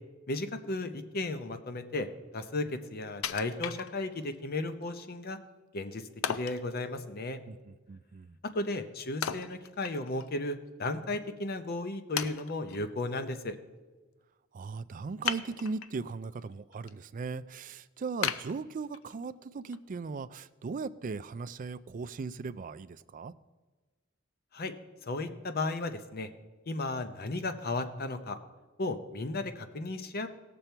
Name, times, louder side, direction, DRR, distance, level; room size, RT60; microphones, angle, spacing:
voice 1, 0.3-2.1 2.3-5.4 5.7-7.4 8.5-13.6 24.5-24.7 25.1-26.3 26.7-28.4 28.8-30.3, left 2 dB, 50° left, 9 dB, 0.8 m, -35 dB
Wood, 3.2-4.3 4.8-4.9 6.2-6.6 9.2-10.3 10.7-10.8 11.5-11.6 12.2-12.8 15.2-16.0 16.5-16.9 17.3-17.4 18.2-19.2 19.7-19.8, left 8 dB, 85° left, 0.5 m, -36 dB
voice 2, 7.5-8.4 14.5-23.3, right 4 dB, 40° right, 14 dB, 0.3 m, -38 dB
17.0 x 6.9 x 4.5 m, 1.3 s
head